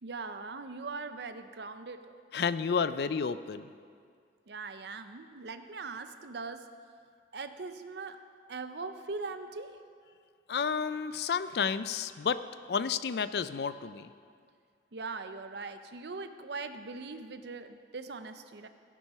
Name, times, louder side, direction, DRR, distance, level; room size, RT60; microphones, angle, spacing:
voice 1, 0.0-2.2 4.5-6.7 7.3-8.2 8.5-9.8 14.9-18.7, right 4 dB, 65° right, 9 dB, 0.6 m, -41 dB
voice 2, 2.3-3.7 10.5-12.4 12.7-14.1, left 6 dB, 60° left, 14 dB, 0.4 m, -31 dB
17.0 x 6.2 x 5.6 m, 2.1 s
head